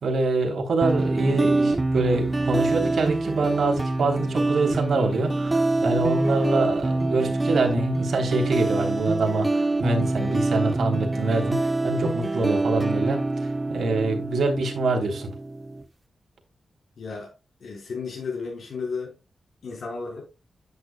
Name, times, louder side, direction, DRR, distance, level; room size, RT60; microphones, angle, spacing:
voice 1, 0.0-15.3, right 3 dB, 70° right, 3.3 m, -25 dB
sound 1, 0.8-15.8, right 2 dB, 20° right, 0.8 m, -25 dB
voice 2, 17.0-17.3 17.6-19.2 19.6-20.3, left 4 dB, 65° left, 4.5 m, -33 dB
10.5 x 9.2 x 2.3 m
wide cardioid pair, 145°, 0 cm